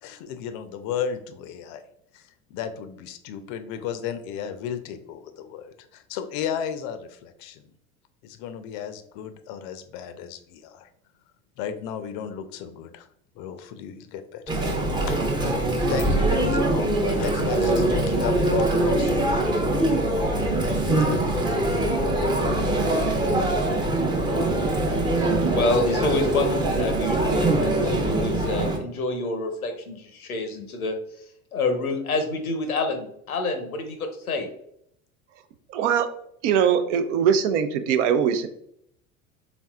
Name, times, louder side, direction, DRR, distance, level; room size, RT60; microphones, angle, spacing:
voice 1, 0.0-1.8 2.1-7.6 8.2-10.9 11.6-13.1 13.4-14.6 15.1-15.2 15.9-19.9 20.6-21.9, left 8 dB, 45° left, 10 dB, 0.5 m, -34 dB
Chatter, 14.5-28.8, right 2 dB, 10° right, 0.6 m, -23 dB
voice 2, 25.5-31.0 31.5-34.5, left 3 dB, 85° left, 6 dB, 0.8 m, -28 dB
voice 3, 35.7-36.1 36.4-38.5, right 8 dB, 60° right, 10 dB, 0.6 m, -21 dB
4.1 x 3.5 x 2.3 m, 0.72 s
figure-of-eight pair, 75°, 42 cm